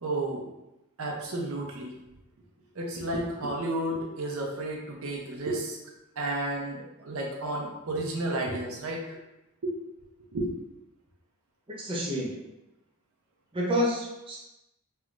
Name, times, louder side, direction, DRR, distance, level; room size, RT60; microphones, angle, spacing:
voice 1, 0.0-0.5 1.0-2.0 2.8-5.8 6.2-9.2 9.6-9.7 10.3-10.5, right 1 dB, 65° right, -1 dB, 0.6 m, -32 dB
voice 2, 11.7-12.3 13.5-14.4, equal, 25° right, -4 dB, 0.6 m, -29 dB
3.2 x 3.1 x 2.4 m, 0.94 s
head